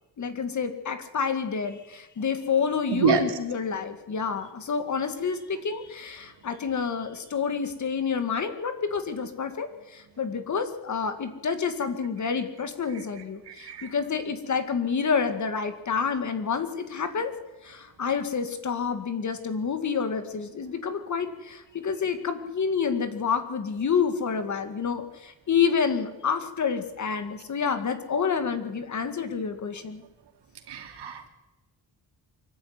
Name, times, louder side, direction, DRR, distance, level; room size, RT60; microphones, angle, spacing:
voice 1, 0.2-17.3 17.6-30.0, left 6 dB, 45° left, 8 dB, 2.2 m, -28 dB
voice 2, 30.7-31.3, right 8 dB, 80° right, 5 dB, 3.1 m, -26 dB
24.5 x 13.5 x 9.7 m, 1.0 s
wide cardioid pair, 170°, 41 cm